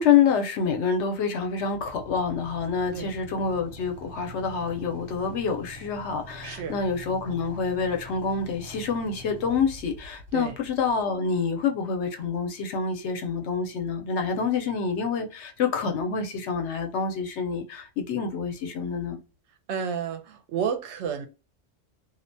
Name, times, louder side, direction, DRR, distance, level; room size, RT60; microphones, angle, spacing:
voice 1, 0.0-19.2, left 6 dB, 85° left, 0.9 m, -27 dB
Motorcycle / Idling, 1.7-11.7, equal, 55° right, 1.1 m, -45 dB
voice 2, 6.4-6.8 10.3-10.6 19.7-21.3, right 7 dB, 85° right, 0.9 m, -31 dB
2.4 x 2.1 x 2.6 m
omnidirectional pair, 1.1 m